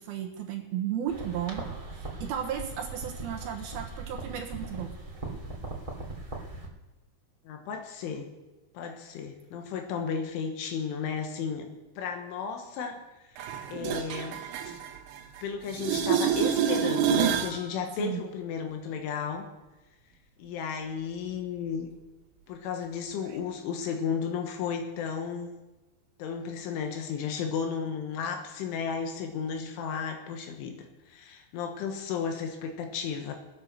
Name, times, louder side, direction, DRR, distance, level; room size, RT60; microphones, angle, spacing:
voice 1, 0.0-1.7 1.9-4.9 18.0-18.2, right 9 dB, 70° right, 2 dB, 2.6 m, -34 dB
sound 1, 1.1-6.7, right 2 dB, 10° right, 1.5 m, -39 dB
voice 2, 7.5-8.3 8.8-11.7 12.0-13.0 13.3-14.4 15.4-19.4 20.4-21.9 22.5-25.5 26.2-33.3, left 6 dB, 85° left, 4 dB, 3.8 m, -34 dB
sound 2, 13.4-15.4 15.7-17.6 23.3-23.4, right 8 dB, 85° right, 3.5 m, -28 dB
20.0 x 8.1 x 6.5 m, 1.1 s
omnidirectional pair, 5.5 m